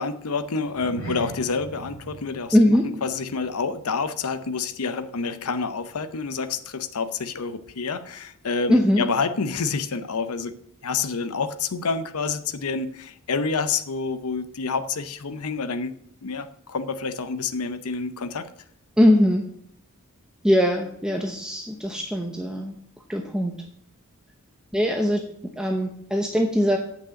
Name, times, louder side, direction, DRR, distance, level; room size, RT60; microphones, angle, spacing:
voice 1, 0.0-10.5 10.8-18.5, left 4 dB, 80° left, 11 dB, 0.7 m, -28 dB
sound 1, 0.6-5.3 5.5-5.8 6.3-6.4, right 2 dB, 65° left, 4.5 m, -42 dB
voice 2, 2.5-2.8 8.7-9.0 19.0-19.4 20.4-22.7 23.1-23.5 24.7-25.2 25.6-26.8, equal, 5° right, 2 dB, 0.8 m, -21 dB
8.4 x 6.4 x 7.5 m, 0.68 s
head